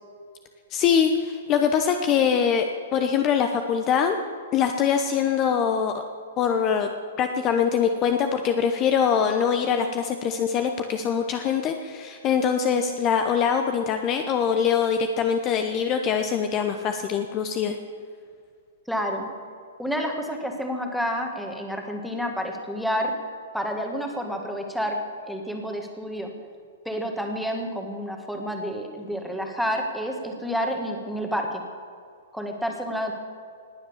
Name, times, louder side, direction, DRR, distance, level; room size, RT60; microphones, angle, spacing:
voice 1, 0.7-4.2 4.5-6.0 6.4-6.9 7.2-17.8, left 7 dB, 30° left, 6 dB, 0.9 m, -23 dB
voice 2, 18.9-19.3 19.8-23.1 23.5-25.0 25.3-26.3 26.8-31.6 32.3-33.1, equal, ahead, 2 dB, 1.8 m, -29 dB
19.5 x 7.9 x 7.2 m, 2.2 s
hypercardioid pair, 145°, 0 cm